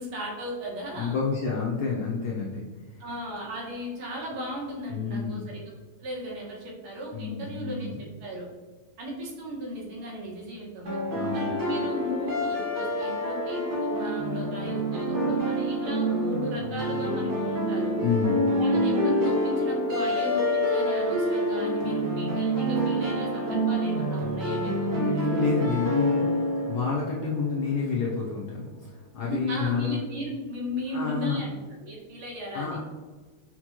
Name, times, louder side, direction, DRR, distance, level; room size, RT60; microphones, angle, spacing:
voice 1, 0.0-1.2 3.0-5.7 6.0-8.4 9.0-11.0 11.3-17.9 18.6-24.9 29.2-31.5 31.8-32.8, equal, 85° right, -3 dB, 1.9 m, -36 dB
voice 2, 0.9-2.7 4.9-5.5 7.1-8.0 11.0-11.5 18.0-18.4 24.9-26.3 26.7-30.0 30.9-31.4 32.5-32.8, left 5 dB, 75° left, -4 dB, 0.9 m, -29 dB
sound 1, 10.9-27.7, equal, 55° right, 1.4 m, -27 dB
5.8 x 2.2 x 2.8 m, 1.3 s
omnidirectional pair, 2.3 m